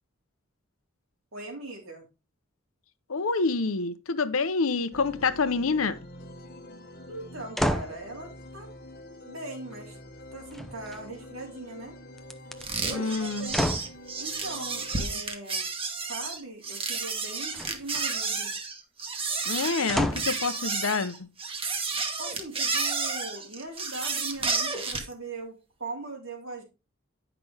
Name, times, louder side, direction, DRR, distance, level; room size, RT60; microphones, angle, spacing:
voice 1, 1.3-2.1 7.1-8.7 9.2-10.0 10.3-12.0 12.9-13.7 14.2-15.7 16.1-18.5 22.2-26.6, right 2 dB, 85° right, 3.5 m, -40 dB
voice 2, 3.1-6.0 12.9-13.5 19.5-21.3, left 4 dB, 80° left, 0.8 m, -27 dB
sound 1, 4.9-15.0, left 1 dB, 50° left, 1.3 m, -46 dB
sound 2, 7.6-8.0 10.5-11.2 12.2-12.6 13.5-14.0 17.5-18.1 19.9-20.4 21.1-21.2, equal, ahead, 0.7 m, -29 dB
sound 3, 12.6-25.1, right 4 dB, 25° right, 1.4 m, -31 dB
9.8 x 5.9 x 3.4 m
head